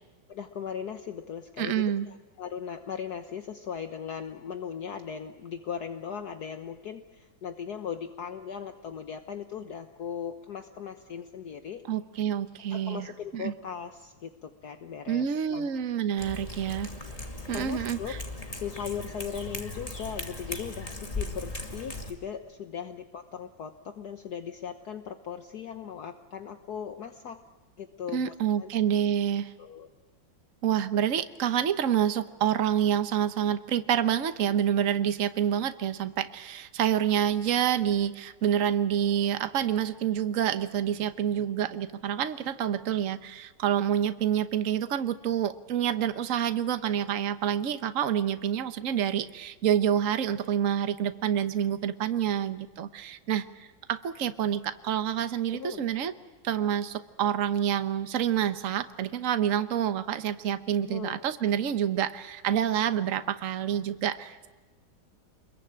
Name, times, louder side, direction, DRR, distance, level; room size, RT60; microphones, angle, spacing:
voice 1, 0.3-11.8 12.7-15.7 17.5-18.1 18.5-27.4 27.8-28.7 29.6-29.9 55.5-55.8 60.8-61.2, left 7 dB, 60° left, 7 dB, 1.6 m, -38 dB
voice 2, 1.6-2.1 11.9-13.5 15.1-16.9 17.5-18.2 28.1-29.5 30.6-56.1 56.4-64.5, right 9 dB, 50° right, 10 dB, 1.3 m, -28 dB
Cat, 16.2-22.1, left 2 dB, 20° left, 2.5 m, -38 dB
28.0 x 22.0 x 8.9 m, 1.2 s
omnidirectional pair, 2.0 m